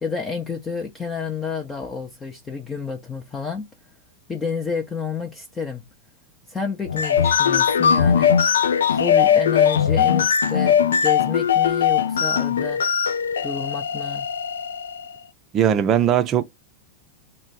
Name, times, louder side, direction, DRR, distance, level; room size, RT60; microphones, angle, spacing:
voice 1, 0.0-3.7 4.3-5.8 6.5-8.4 8.9-12.8 13.4-14.3, left 6 dB, 15° left, 0.7 m, -30 dB
sound 1, 6.8-15.1, left 8 dB, 65° left, 0.3 m, -20 dB
voice 2, 15.5-16.4, right 9 dB, 30° right, 0.5 m, -19 dB
3.1 x 2.3 x 4.0 m
figure-of-eight pair, 90°, 0 cm